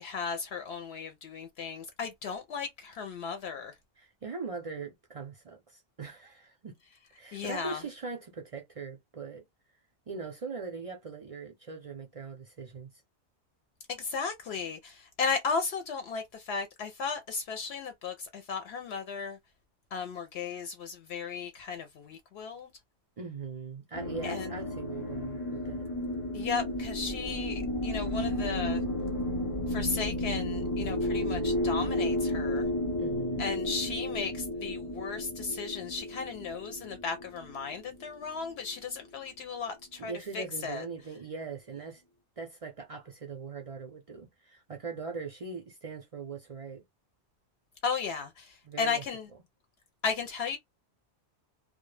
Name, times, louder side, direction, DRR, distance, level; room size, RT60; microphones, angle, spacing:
voice 1, 0.0-3.7 7.3-7.8 14.0-19.4 19.9-22.7 24.2-24.5 26.3-28.8 29.7-32.6 33.4-40.8 47.8-49.2 50.0-50.6, left 5 dB, 75° left, 0.8 m, -35 dB
voice 2, 4.0-6.8 7.1-9.4 10.1-12.9 23.2-25.9 33.0-33.6 40.0-42.0 42.4-46.8 48.6-49.0, right 4 dB, 50° right, 0.4 m, -41 dB
sound 1, 23.9-38.5, left 1 dB, 35° left, 0.8 m, -32 dB
2.2 x 2.1 x 3.1 m
omnidirectional pair, 1.1 m